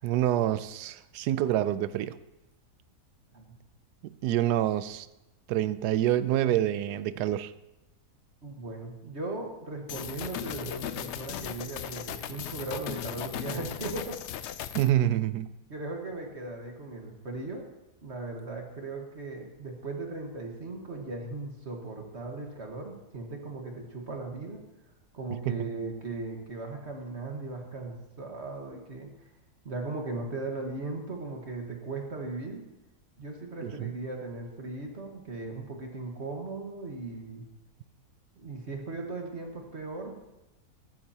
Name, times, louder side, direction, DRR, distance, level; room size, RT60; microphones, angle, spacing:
voice 1, 0.0-2.2 4.0-5.1 5.5-7.5 14.7-15.5 25.5-25.6 33.6-33.9, right 12 dB, 85° right, 15 dB, 1.1 m, -27 dB
voice 2, 8.4-14.2 15.7-17.7 18.0-24.6 25.1-29.1 29.6-32.6 33.2-37.5 38.4-40.2, right 3 dB, 45° right, 2 dB, 1.7 m, -38 dB
sound 1, 9.9-14.9, left 10 dB, 80° left, 0.6 m, -37 dB
14.0 x 12.5 x 2.9 m, 0.97 s
omnidirectional pair, 1.7 m